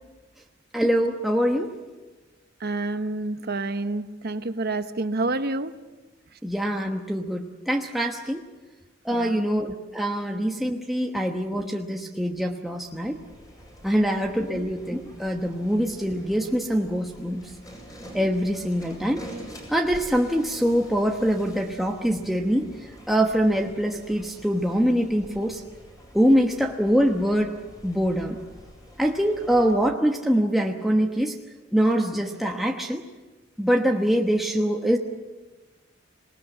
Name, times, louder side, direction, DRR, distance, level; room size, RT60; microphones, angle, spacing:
voice 1, 0.7-1.7 6.4-8.4 9.0-13.2 13.8-17.5 18.1-19.3 19.7-25.6 26.1-27.6 27.8-28.4 29.0-31.4 31.7-33.0 33.6-35.0, equal, ahead, 1.1 m, -24 dB
voice 2, 2.6-5.8 6.3-6.4 9.1-9.4 11.1-11.2 14.0-14.1 14.5-14.7, right 2 dB, 55° right, 1.0 m, -29 dB
sound 1, 12.8-29.7, equal, 20° left, 7.0 m, -46 dB
26.5 x 19.5 x 7.8 m
head